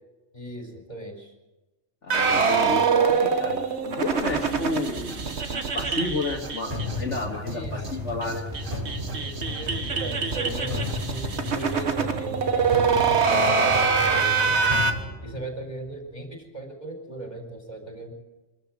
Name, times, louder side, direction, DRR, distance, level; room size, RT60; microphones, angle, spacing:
voice 1, 0.3-1.3 7.5-7.9 9.1-14.7 15.2-18.1, right 2 dB, 35° left, 3 dB, 4.5 m, -37 dB
voice 2, 2.0-8.4, left 3 dB, 70° left, -1 dB, 2.2 m, -31 dB
sound 1, 2.1-7.2 7.5-7.6 7.8-7.9 8.2-14.9, right 5 dB, 60° right, 1.7 m, -24 dB
sound 2, 4.2-11.3, right 1 dB, 90° right, 3.0 m, -41 dB
sound 3, 6.7-15.9, left 2 dB, 30° right, 6.0 m, -34 dB
25.0 x 13.5 x 7.8 m, 1.1 s
omnidirectional pair, 1.3 m